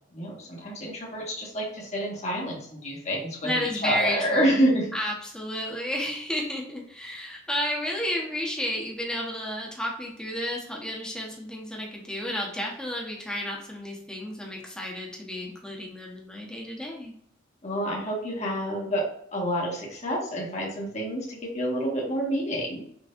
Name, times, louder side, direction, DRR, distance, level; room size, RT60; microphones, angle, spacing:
voice 1, 0.1-4.9 17.6-19.0 19.3-22.8, equal, 40° left, -3 dB, 1.5 m, -28 dB
voice 2, 3.4-4.6 4.9-17.1, equal, 5° left, -2 dB, 1.2 m, -32 dB
6.1 x 3.3 x 2.6 m, 0.67 s
head